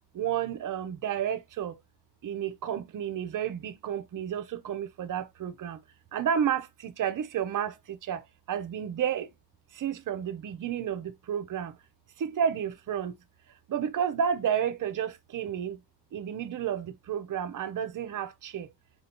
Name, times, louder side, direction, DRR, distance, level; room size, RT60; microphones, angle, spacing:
voice 1, 0.1-1.8 2.2-5.8 6.1-9.3 9.7-11.8 12.2-13.2 13.7-15.8 16.1-18.7, right 8 dB, 50° right, 0.5 m, -31 dB
4.2 x 2.7 x 2.8 m
wide cardioid pair, 120°, 43 cm